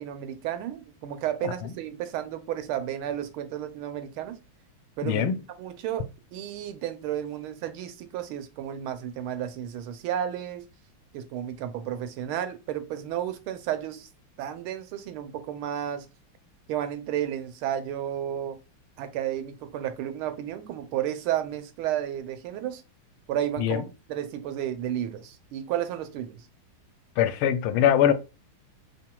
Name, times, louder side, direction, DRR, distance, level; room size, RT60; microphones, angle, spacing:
voice 1, 0.0-4.4 5.0-5.3 5.6-6.0 6.3-10.6 11.1-14.1 14.4-16.1 16.7-18.6 19.0-22.8 23.3-23.8 24.1-26.4, right 11 dB, 90° right, 1.5 m, -32 dB
voice 2, 5.0-5.4 23.6-23.8 27.2-28.1, left 10 dB, 90° left, 1.5 m, -22 dB
5.7 x 3.6 x 2.2 m
omnidirectional pair, 2.3 m